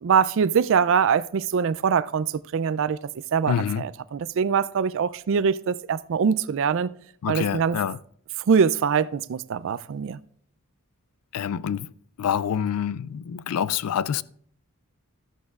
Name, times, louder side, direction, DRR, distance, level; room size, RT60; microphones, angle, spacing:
voice 1, 0.0-3.0 3.3-6.9 7.3-7.8 8.5-10.2, right 6 dB, 55° right, 0.3 m, -23 dB
voice 2, 3.5-3.9 7.2-8.0 11.3-11.9 12.2-14.2, left 8 dB, 80° left, 0.4 m, -27 dB
13.5 x 11.0 x 2.4 m
head